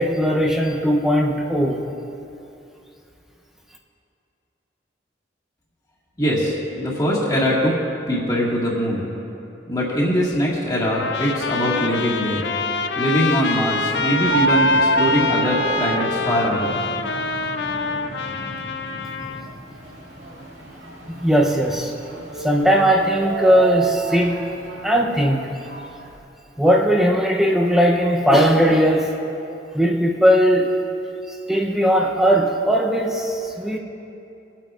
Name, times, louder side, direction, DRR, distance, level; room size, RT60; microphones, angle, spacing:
voice 1, 0.0-1.8 21.1-21.9 22.4-24.5 24.8-25.5 26.6-29.2 29.7-30.8 31.3-33.8, equal, ahead, -1 dB, 0.7 m, -18 dB
voice 2, 6.2-7.8 8.1-9.1 9.7-12.4 13.0-16.7, equal, 20° left, -6 dB, 1.9 m, -22 dB
Trumpet, 10.8-19.5, left 4 dB, 70° left, 0.5 m, -26 dB
sound 1, 13.9-19.5, equal, 50° left, 1.6 m, -40 dB
sound 2, 14.2-26.2, right 2 dB, 75° right, 2.3 m, -28 dB
25.5 x 8.8 x 2.5 m, 2.8 s
head